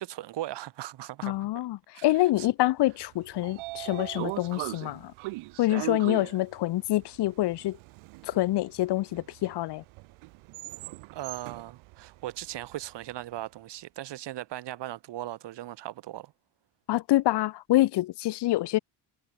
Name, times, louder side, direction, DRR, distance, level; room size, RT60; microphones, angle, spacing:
voice 1, 0.0-1.5 1.9-2.0 2.4-2.5 11.1-16.3, right 14 dB, 60° right, 2.0 m, -38 dB
voice 2, 1.2-5.1 5.6-7.8 8.2-9.8 16.9-18.8, left 16 dB, 55° left, 1.0 m, -26 dB
Train / Sliding door, 3.0-13.2, right 21 dB, 90° right, 1.7 m, -40 dB
cardioid pair, 125°, 48 cm